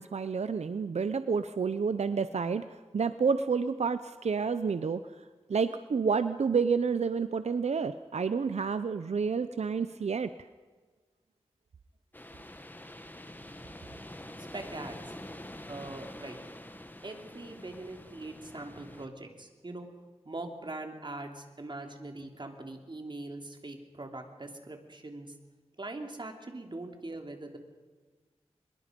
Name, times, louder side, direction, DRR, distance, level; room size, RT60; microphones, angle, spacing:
voice 1, 0.0-2.6 2.9-5.0 5.5-10.3, right 5 dB, 90° right, 11 dB, 0.7 m, -29 dB
sound 1, 12.1-19.1, left 1 dB, 15° left, 1.7 m, -46 dB
voice 2, 14.5-15.2 15.7-16.4 17.0-19.9 20.2-25.4 25.8-27.6, right 2 dB, 45° right, 4 dB, 3.1 m, -42 dB
23.5 x 21.5 x 5.3 m, 1.4 s
wide cardioid pair, 65°, 11 cm